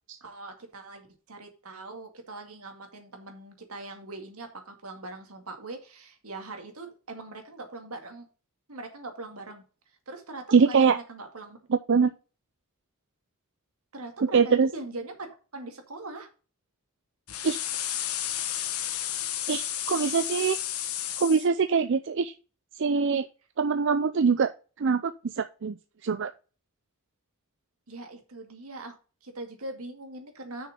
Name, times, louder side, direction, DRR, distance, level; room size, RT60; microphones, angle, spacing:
voice 1, 0.2-8.3 8.7-9.6 10.1-11.6 13.9-15.2 15.5-16.3 27.9-28.9 29.2-30.7, right 2 dB, 80° right, 5 dB, 2.2 m, -41 dB
voice 2, 10.5-11.0 11.7-12.1 14.3-14.7 17.4-17.6 19.5-20.6 21.2-22.3 22.8-23.2 23.6-24.5 24.8-25.8 26.0-26.3, right 5 dB, 60° right, 9 dB, 0.5 m, -23 dB
sound 1, 17.3-21.5, left 11 dB, 85° left, 1.2 m, -32 dB
6.4 x 6.4 x 5.2 m, 0.35 s
head